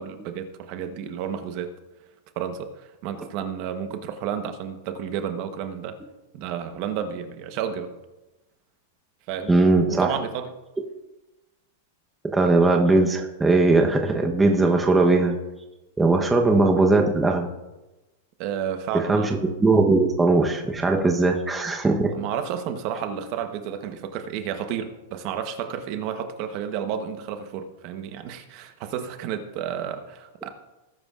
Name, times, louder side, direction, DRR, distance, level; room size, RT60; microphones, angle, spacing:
voice 1, 0.0-1.7 2.4-6.0 6.3-7.9 9.3-9.5 9.9-10.5 16.2-16.3 18.4-19.3 22.1-30.5, right 8 dB, 40° right, 8 dB, 1.0 m, -31 dB
voice 2, 9.5-10.2 12.2-15.4 16.0-17.5 18.9-22.1, right 3 dB, 10° right, 2 dB, 0.9 m, -19 dB
18.5 x 9.8 x 2.5 m, 1.0 s
supercardioid pair, 155°, 0 cm